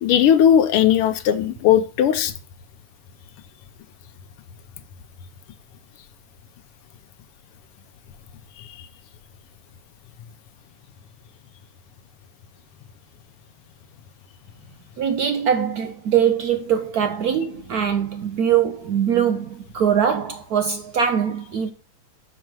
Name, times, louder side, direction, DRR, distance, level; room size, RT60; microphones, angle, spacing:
voice 1, 0.0-2.3 8.6-8.7, left 9 dB, 90° left, 1.6 m, -17 dB
voice 2, 15.0-21.7, right 8 dB, 80° right, 0.8 m, -22 dB
6.4 x 4.5 x 6.2 m
omnidirectional pair, 2.4 m